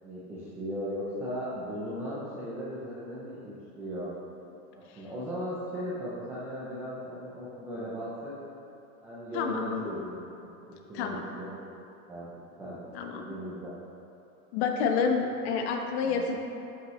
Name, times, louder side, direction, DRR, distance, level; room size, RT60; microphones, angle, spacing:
voice 1, 0.0-4.1 4.7-8.3 9.0-11.7 12.1-12.3 12.6-12.8 13.0-13.7 16.0-16.4, equal, 5° right, -10 dB, 0.3 m, -37 dB
voice 2, 9.3-9.9 10.9-11.2 12.9-13.2 14.5-16.4, left 5 dB, 50° left, 3 dB, 1.0 m, -28 dB
13.0 x 5.5 x 3.0 m, 2.8 s
supercardioid pair, 140°, 44 cm